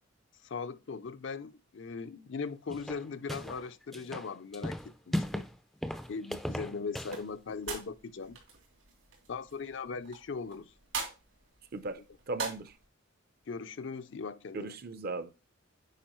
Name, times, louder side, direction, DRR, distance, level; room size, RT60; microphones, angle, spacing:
voice 1, 0.4-5.5 6.1-8.4 9.3-10.7 13.5-14.8, left 5 dB, 60° left, 0.5 m, -39 dB
sound 1, 2.7-3.6 3.9-5.5 5.8-7.2, left 1 dB, ahead, 0.4 m, -36 dB
sound 2, 7.1-12.8, right 5 dB, 75° right, 3.1 m, -44 dB
voice 2, 12.3-12.7 14.5-15.5, right 3 dB, 45° right, 0.6 m, -37 dB
8.9 x 4.8 x 3.0 m
head